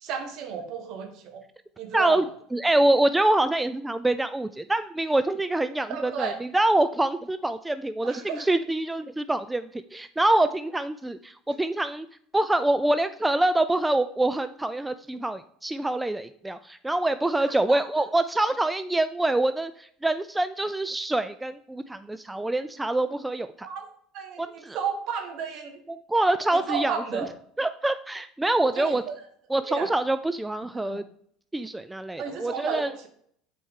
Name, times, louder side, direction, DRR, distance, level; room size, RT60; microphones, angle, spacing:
voice 1, 0.0-1.4 1.8-2.2 5.9-6.4 8.0-8.4 17.7-18.1 23.6-23.9 24.1-25.8 26.5-27.3 28.6-29.1 29.7-29.9 30.8-31.0 32.2-33.1, right 6 dB, 60° right, 5 dB, 1.4 m, -33 dB
voice 2, 1.9-2.2 2.5-12.1 12.3-23.7 24.4-24.8 25.9-27.2 27.6-29.0 29.5-31.0 31.5-32.9, right 2 dB, 10° right, 12 dB, 0.3 m, -25 dB
7.0 x 4.5 x 3.7 m, 0.65 s
hypercardioid pair, 85°, 0 cm